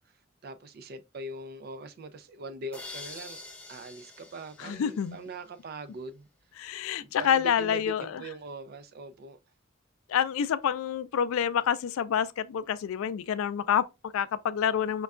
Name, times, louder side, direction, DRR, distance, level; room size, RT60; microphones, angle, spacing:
voice 1, 0.4-3.4 3.7-6.3 7.0-9.4, right 2 dB, 50° right, 0.4 m, -42 dB
sound 1, 2.7-5.6, left 2 dB, 5° left, 0.5 m, -46 dB
voice 2, 4.6-5.2 6.6-8.2 10.1-15.0, left 8 dB, 85° left, 0.3 m, -28 dB
5.2 x 2.2 x 2.3 m
head